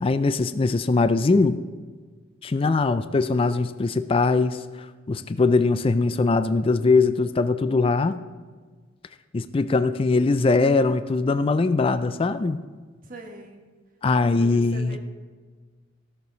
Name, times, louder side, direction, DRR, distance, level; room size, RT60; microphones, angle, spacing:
voice 1, 0.0-1.6 2.4-8.2 9.3-12.6 14.0-15.0, left 3 dB, 30° left, 12 dB, 0.3 m, -21 dB
voice 2, 13.0-13.7 14.2-15.0, right 1 dB, 45° right, 2 dB, 1.4 m, -42 dB
16.0 x 6.7 x 4.0 m, 1.5 s
head